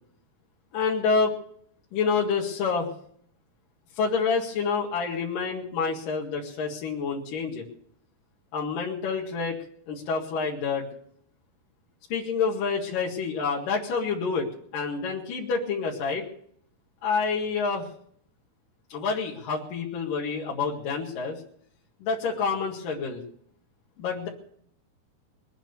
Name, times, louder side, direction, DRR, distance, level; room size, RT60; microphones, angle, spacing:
voice 1, 0.7-1.3 1.9-2.9 4.0-7.6 8.5-9.6 9.9-10.9 12.1-16.3 17.0-17.9 18.9-21.4 22.0-23.2 24.0-24.3, left 5 dB, 60° left, -3 dB, 3.5 m, -28 dB
22.0 x 9.0 x 7.0 m, 0.64 s
omnidirectional pair, 4.5 m